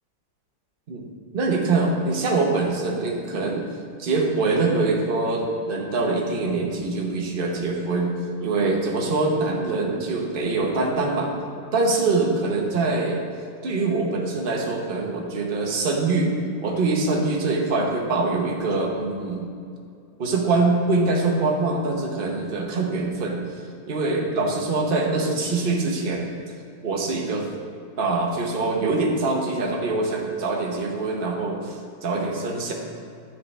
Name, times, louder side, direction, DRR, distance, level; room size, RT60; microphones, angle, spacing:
voice 1, 1.3-3.6 4.0-8.1 8.4-11.3 11.7-13.2 13.6-16.3 16.6-19.5 20.2-23.4 23.9-26.3 26.8-27.5 28.0-32.7, right 3 dB, 40° right, 0 dB, 0.8 m, -24 dB
9.7 x 6.7 x 3.3 m, 2.3 s
omnidirectional pair, 2.1 m